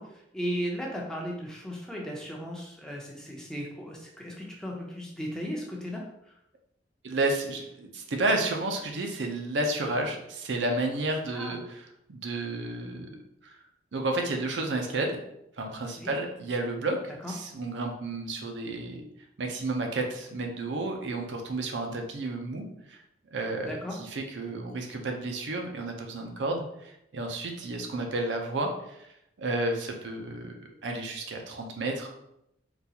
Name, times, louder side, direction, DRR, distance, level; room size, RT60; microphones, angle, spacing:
voice 1, 0.0-6.0 11.3-11.6 16.0-16.1 17.2-17.3 23.6-23.9, equal, 5° left, -2 dB, 0.5 m, -36 dB
voice 2, 7.0-11.6 12.1-13.1 13.4-13.5 13.9-15.2 15.6-17.0 17.3-19.0 19.4-23.0 23.3-23.8 24.1-29.0 29.4-30.6 30.8-32.1, right 2 dB, 75° right, 3 dB, 0.5 m, -31 dB
3.8 x 2.3 x 2.8 m, 0.80 s
head